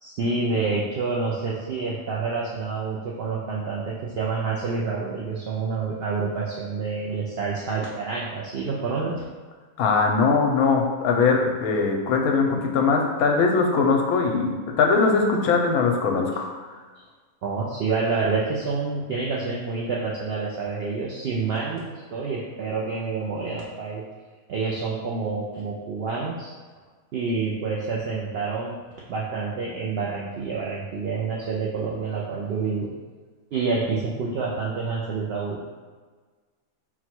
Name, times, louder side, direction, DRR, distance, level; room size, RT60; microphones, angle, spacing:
voice 1, 0.0-9.2 17.4-24.0 24.5-26.5 27.1-28.8 29.1-32.9 33.5-35.6, right 4 dB, 70° right, -4 dB, 0.6 m, -28 dB
voice 2, 9.8-16.5, left 4 dB, 90° left, 2 dB, 1.1 m, -21 dB
4.0 x 2.2 x 4.4 m, 1.4 s
omnidirectional pair, 1.5 m